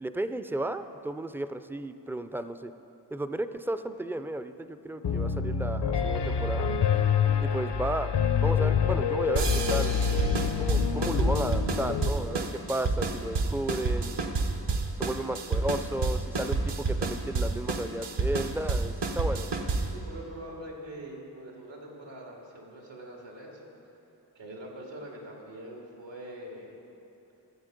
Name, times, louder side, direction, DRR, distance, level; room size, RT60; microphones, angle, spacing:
voice 1, 0.0-2.7 3.1-6.8 7.4-8.1 8.4-10.1 10.6-14.5 15.0-19.5, right 1 dB, 5° right, 10 dB, 0.3 m, -33 dB
Piano, 5.0-12.1, left 7 dB, 70° left, 0.7 m, -27 dB
sound 1, 9.4-20.0, right 3 dB, 70° right, 0.9 m, -29 dB
voice 2, 19.9-23.6 24.4-26.8, right 1 dB, 90° right, -1 dB, 2.2 m, -43 dB
13.5 x 7.6 x 5.2 m, 2.8 s
wide cardioid pair, 70°, 43 cm